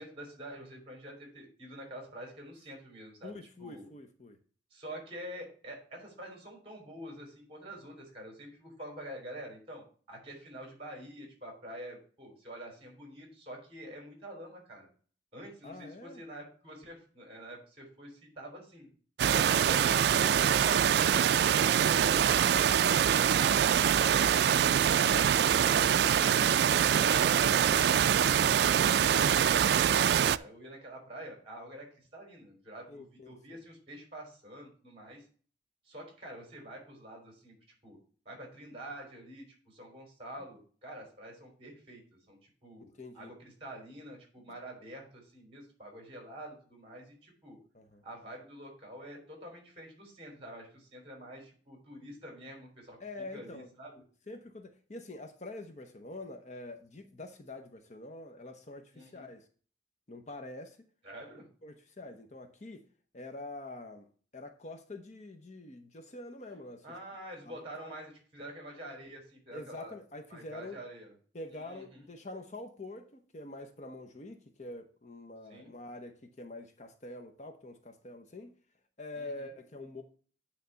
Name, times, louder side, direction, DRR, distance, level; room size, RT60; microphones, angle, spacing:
voice 1, 0.0-3.9 4.7-14.9 15.3-18.9 29.1-35.2 35.8-37.5 37.8-38.0 38.2-42.0 42.3-42.9 43.1-47.6 48.0-53.0 53.3-53.9 58.9-59.3 61.0-61.5 66.8-70.0 70.3-71.1 71.5-72.1 75.5-75.7 79.1-79.5, right 1 dB, 30° right, 3.5 m, -47 dB
voice 2, 3.2-4.4 15.6-16.2 19.7-20.4 23.3-23.6 26.1-26.5 32.9-33.6 43.0-43.3 47.7-48.0 53.0-53.7 54.3-59.4 60.1-60.8 61.6-62.8 63.1-64.1 64.3-66.9 67.4-67.9 69.5-70.8 71.3-78.6 79.0-80.0, left 2 dB, 40° left, 0.8 m, -46 dB
sound 1, 19.2-30.4, right 9 dB, 60° right, 0.3 m, -24 dB
9.3 x 3.4 x 6.7 m
head